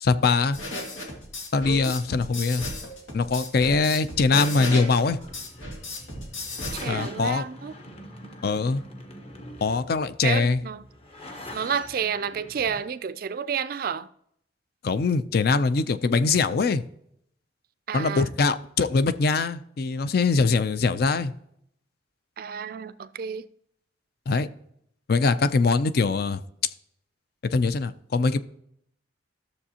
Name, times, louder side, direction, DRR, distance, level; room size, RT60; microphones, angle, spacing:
voice 1, 0.0-0.6 1.5-2.6 3.1-5.2 6.9-7.5 8.4-8.8 9.6-10.6 14.8-16.8 17.9-21.3 24.3-24.5 25.1-26.4 27.4-28.4, left 4 dB, 50° left, 0.4 m, -22 dB
sound 1, 0.5-6.9, left 2 dB, 85° left, 2.0 m, -34 dB
sound 2, 5.1-12.8, left 1 dB, 30° left, 1.0 m, -43 dB
voice 2, 6.7-7.7 10.2-10.9 11.5-14.1 17.9-18.3 22.4-23.5, right 7 dB, 50° right, 0.3 m, -30 dB
12.5 x 6.9 x 2.8 m
head